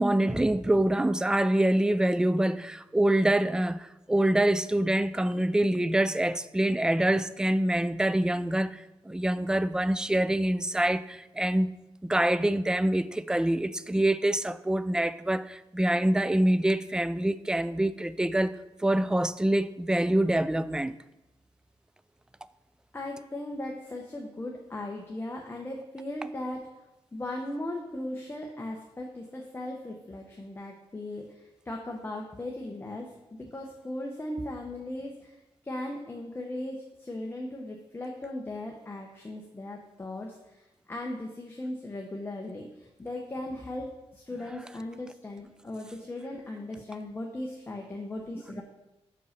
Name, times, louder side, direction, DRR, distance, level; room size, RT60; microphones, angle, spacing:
voice 1, 0.0-11.7 12.0-18.6 18.8-21.0 48.5-48.6, right 1 dB, 5° right, 0.3 m, -25 dB
voice 2, 22.9-26.6 27.1-35.4 35.6-48.6, left 1 dB, 20° left, 0.9 m, -38 dB
5.6 x 5.4 x 6.5 m
cardioid pair, 90°, 11 cm